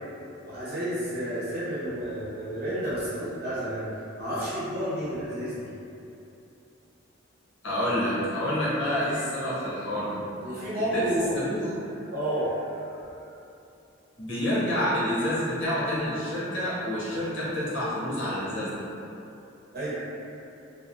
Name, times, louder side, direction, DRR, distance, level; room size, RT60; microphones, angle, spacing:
voice 1, 0.4-3.9 4.2-5.7 10.4-11.4 12.1-13.1 19.7-20.0, right 1 dB, 50° right, -11 dB, 0.8 m, -31 dB
voice 2, 7.6-10.2 10.5-11.0 11.3-11.6 14.2-18.8, left 1 dB, 70° left, -8 dB, 0.8 m, -28 dB
2.9 x 2.0 x 2.5 m, 2.8 s
head